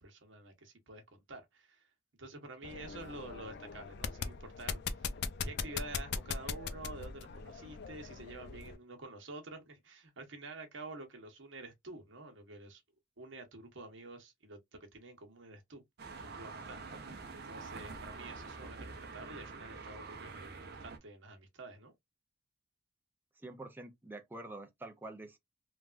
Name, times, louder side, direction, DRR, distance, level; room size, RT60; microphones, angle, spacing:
voice 1, 0.0-1.8 2.2-5.1 5.4-12.8 13.2-15.8 16.2-21.9, right 2 dB, 75° right, 1.0 m, -49 dB
sound 1, 2.6-8.8, left 5 dB, 55° left, 0.4 m, -40 dB
sound 2, 16.0-21.0, right 4 dB, 55° right, 0.6 m, -46 dB
voice 2, 23.4-25.4, right 2 dB, 10° right, 0.5 m, -47 dB
3.3 x 2.3 x 2.4 m
head